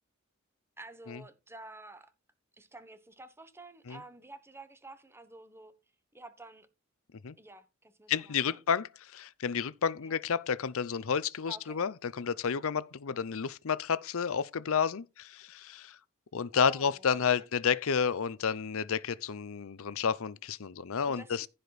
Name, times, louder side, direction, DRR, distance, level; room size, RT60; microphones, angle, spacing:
voice 1, 0.8-2.1 2.6-5.7 6.1-6.7 7.4-8.6 10.0-10.2 11.5-11.8 16.5-17.5 21.0-21.3, right 2 dB, 10° right, 1.2 m, -50 dB
voice 2, 8.1-16.0 16.3-21.5, left 6 dB, 70° left, 0.6 m, -31 dB
15.0 x 5.1 x 4.1 m
head